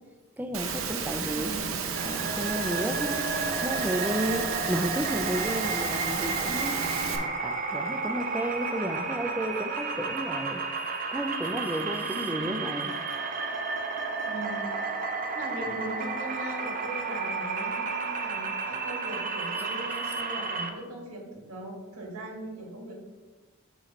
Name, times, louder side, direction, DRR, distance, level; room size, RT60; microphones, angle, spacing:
voice 1, 0.4-1.6 2.0-10.6 11.1-13.0, right 1 dB, 10° right, 7 dB, 0.4 m, -32 dB
Engine / Mechanisms, 0.5-7.2, right 6 dB, 75° right, 0.8 m, -32 dB
voice 2, 1.2-1.8 12.0-12.4 14.2-14.7 15.3-23.0, right 1 dB, 90° right, -1 dB, 1.7 m, -39 dB
sound 1, 2.0-20.7, right 4 dB, 40° right, 0.7 m, -32 dB
6.5 x 3.1 x 5.8 m, 1.3 s
head